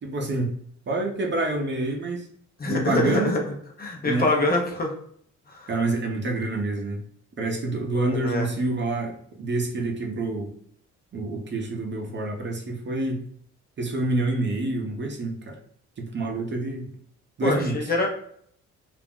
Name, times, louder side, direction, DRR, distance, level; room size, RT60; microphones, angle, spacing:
voice 1, 0.0-0.5 0.9-2.3 2.7-3.3 4.0-4.3 5.7-7.0 7.4-10.5 11.1-13.2 13.8-15.6 16.0-16.9 17.4-17.9, right 2 dB, 40° right, 1 dB, 0.7 m, -27 dB
voice 2, 2.6-3.4 3.8-4.9 5.5-5.7 7.9-8.5 17.4-18.1, left 2 dB, 30° left, 1 dB, 0.7 m, -25 dB
2.5 x 2.0 x 3.5 m, 0.64 s
cardioid pair, 90°, 30 cm